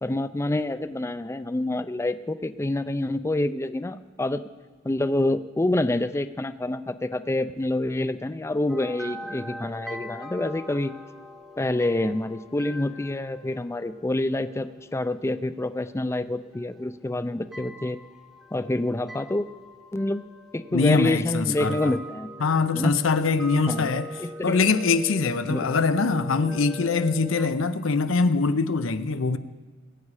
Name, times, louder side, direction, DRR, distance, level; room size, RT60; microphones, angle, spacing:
voice 1, 0.0-4.4 4.8-10.9 11.6-18.0 18.5-19.5 19.9-20.2 20.5-22.3 22.7-22.9 23.7-23.9 24.2-24.6 25.5-25.7, left 1 dB, 15° left, 0.4 m, -27 dB
sound 1, 8.7-27.5, equal, 5° right, 0.9 m, -42 dB
voice 2, 20.7-21.9 22.4-24.1 24.4-29.4, left 4 dB, 80° left, 0.7 m, -23 dB
21.0 x 8.5 x 4.8 m
head